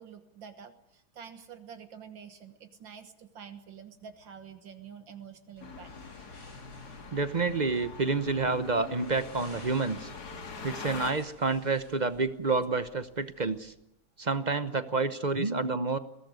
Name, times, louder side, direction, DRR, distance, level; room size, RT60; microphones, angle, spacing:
voice 1, 0.0-6.1, right 7 dB, 75° right, 8 dB, 2.1 m, -48 dB
sound 1, 5.6-13.8, left 1 dB, 85° left, 8.1 m, -56 dB
sound 2, 5.6-11.1, left 4 dB, 55° left, 2.3 m, -43 dB
voice 2, 7.1-10.1 10.6-13.7 14.2-16.0, right 4 dB, 45° right, 12 dB, 0.6 m, -29 dB
22.0 x 18.5 x 9.5 m, 0.81 s
omnidirectional pair, 2.1 m